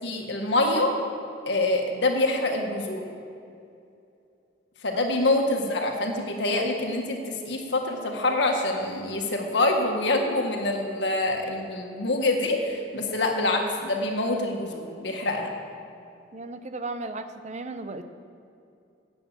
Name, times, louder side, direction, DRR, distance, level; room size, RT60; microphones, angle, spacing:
voice 1, 0.0-0.9 1.5-3.0 4.8-15.5, left 2 dB, 70° left, 2 dB, 1.6 m, -26 dB
voice 2, 16.3-18.0, right 2 dB, 40° right, 9 dB, 0.7 m, -35 dB
11.0 x 8.8 x 7.8 m, 2.6 s
head